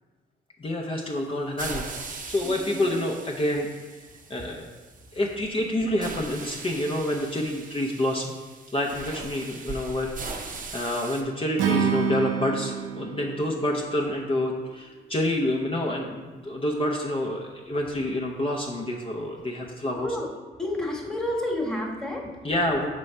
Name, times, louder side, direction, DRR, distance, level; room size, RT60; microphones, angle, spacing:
voice 1, 0.6-3.7 4.3-4.7 5.1-8.3 8.7-10.1 10.4-20.1 22.4-22.9, left 1 dB, 25° left, -1 dB, 0.7 m, -28 dB
sound 1, 1.6-5.4 6.0-11.2, right 4 dB, 45° right, 0.7 m, -40 dB
voice 2, 2.4-2.8 19.9-20.3 20.6-22.3, left 1 dB, 5° left, -2 dB, 1.3 m, -30 dB
Acoustic guitar / Strum, 11.6-14.8, right 8 dB, 75° right, 0.7 m, -29 dB
6.1 x 3.3 x 5.4 m, 1.3 s
cardioid pair, 90°, 20 cm